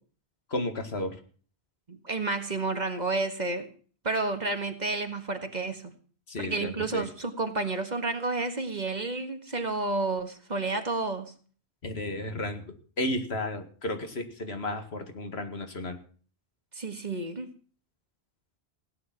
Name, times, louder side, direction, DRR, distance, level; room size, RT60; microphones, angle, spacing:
voice 1, 0.5-1.2 6.3-7.0 11.8-16.0, left 1 dB, 75° left, 6 dB, 2.1 m, -33 dB
voice 2, 1.9-3.7 4.0-5.8 6.4-11.3 16.7-17.5, right 3 dB, 40° right, 7 dB, 1.7 m, -30 dB
16.5 x 9.7 x 6.0 m, 0.42 s
omnidirectional pair, 1.1 m